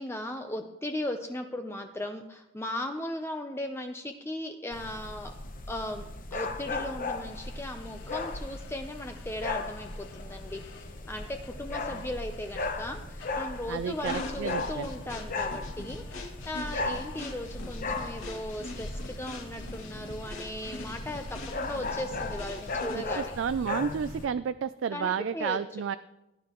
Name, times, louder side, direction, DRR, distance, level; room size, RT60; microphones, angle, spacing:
voice 1, 0.0-5.3 5.7-6.0 6.3-23.3 24.9-25.6, left 1 dB, 10° left, 5 dB, 0.6 m, -37 dB
sound 1, 4.7-24.3, left 3 dB, 45° left, 0.9 m, -37 dB
sound 2, 7.2-24.2, left 4 dB, 65° left, 4.3 m, -56 dB
voice 2, 13.7-14.8 22.9-26.0, right 7 dB, 70° right, 13 dB, 0.3 m, -31 dB
sound 3, 14.1-23.2, left 1 dB, 80° left, 2.5 m, -43 dB
17.0 x 10.5 x 3.0 m, 0.91 s
head